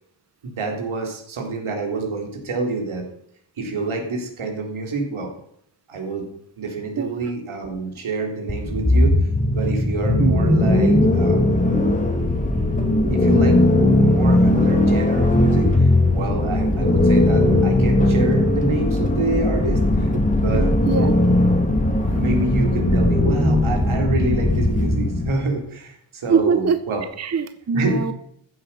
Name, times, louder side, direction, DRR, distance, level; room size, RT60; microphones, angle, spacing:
voice 1, 0.4-3.0 3.6-5.3 5.9-6.3 6.6-9.2 9.5-11.6 13.1-13.6 14.0-20.7 22.1-27.0 27.7-28.0, right 3 dB, 75° right, 2 dB, 3.5 m, -27 dB
sound 1, 8.5-25.4, left 1 dB, 15° left, 2.1 m, -18 dB
voice 2, 26.3-26.8 27.2-28.1, right 6 dB, 30° right, 10 dB, 0.7 m, -22 dB
14.5 x 7.7 x 5.5 m, 0.70 s
wide cardioid pair, 125°, 50 cm